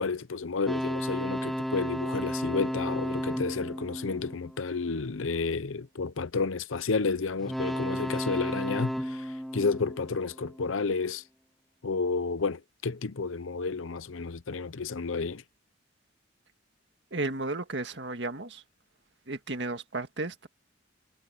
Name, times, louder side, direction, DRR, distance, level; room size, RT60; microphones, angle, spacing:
voice 1, 0.0-11.2 11.8-15.4, left 4 dB, 90° left, 0.8 m, -31 dB
sound 1, 0.7-5.1 7.4-10.7, equal, ahead, 2.1 m, -33 dB
voice 2, 17.1-18.6 19.3-20.5, right 2 dB, 60° right, 1.9 m, -33 dB
head